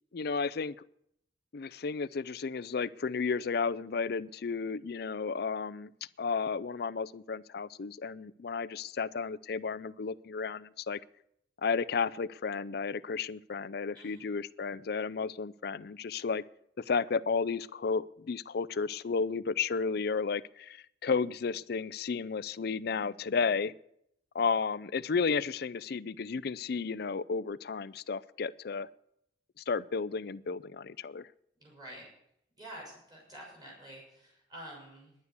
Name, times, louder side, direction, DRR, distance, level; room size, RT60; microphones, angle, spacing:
voice 1, 0.1-0.8 1.5-5.9 6.2-11.0 11.6-16.4 16.8-23.7 24.3-28.9 29.7-31.3, left 5 dB, 60° left, 18 dB, 0.5 m, -33 dB
voice 2, 13.9-14.3 31.6-32.1 32.6-35.1, right 1 dB, 20° right, -3 dB, 5.8 m, -48 dB
11.0 x 9.4 x 8.2 m, 0.73 s
head